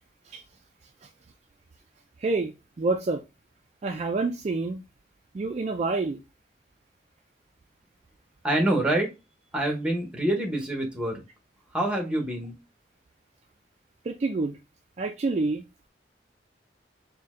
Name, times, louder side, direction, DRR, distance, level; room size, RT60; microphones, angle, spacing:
voice 1, 2.2-3.2 3.8-4.8 5.3-6.2 14.0-14.6 15.0-15.6, right 3 dB, 40° right, 0.3 m, -28 dB
voice 2, 8.4-9.1 9.5-11.2 11.7-12.5, right 1 dB, 5° right, 0.9 m, -26 dB
4.1 x 2.2 x 3.6 m
head